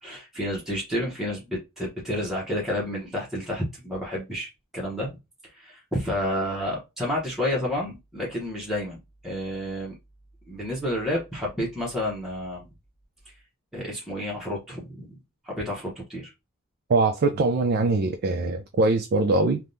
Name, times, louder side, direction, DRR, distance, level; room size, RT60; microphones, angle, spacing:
voice 1, 0.0-5.2 5.5-9.9 10.5-12.7 13.7-15.2 15.4-16.3, left 1 dB, ahead, 0.9 m, -30 dB
voice 2, 16.9-19.6, right 3 dB, 45° right, 0.4 m, -22 dB
3.4 x 2.3 x 2.6 m
head